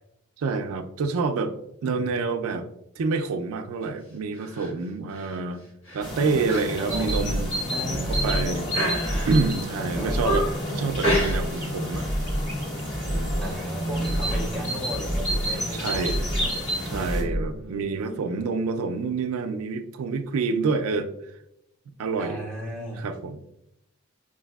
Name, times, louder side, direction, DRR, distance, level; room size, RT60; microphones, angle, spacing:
voice 1, 0.4-1.5 1.8-2.7 3.0-5.6 5.9-7.5 7.9-8.6 9.3-12.1 13.0-13.3 15.7-16.2 16.8-21.1 22.0-22.4 23.0-23.4, right 4 dB, 80° right, 7 dB, 0.4 m, -27 dB
sound 1, 4.3-4.7 5.1-5.4 5.8-6.1 6.5-6.7 7.0-7.1 7.7-8.2 8.7-9.5 9.9-10.6 11.0-11.7 12.0-12.2, equal, 75° left, 1.4 m, -29 dB
sound 2, 6.0-17.2, equal, 55° left, 1.4 m, -30 dB
voice 2, 6.8-8.8 10.0-10.2 13.4-16.5 17.1-18.5 22.2-23.1, equal, 5° left, -2 dB, 0.3 m, -36 dB
sound 3, 6.9-7.6 7.9-8.6 8.9-9.6 9.9-10.6 10.9-11.6 11.9-12.6 12.9-13.6 13.9-14.6 14.9-15.6 15.9-16.6 16.9-17.6, equal, 35° left, 1.4 m, -29 dB
5.5 x 2.6 x 2.2 m, 0.83 s
head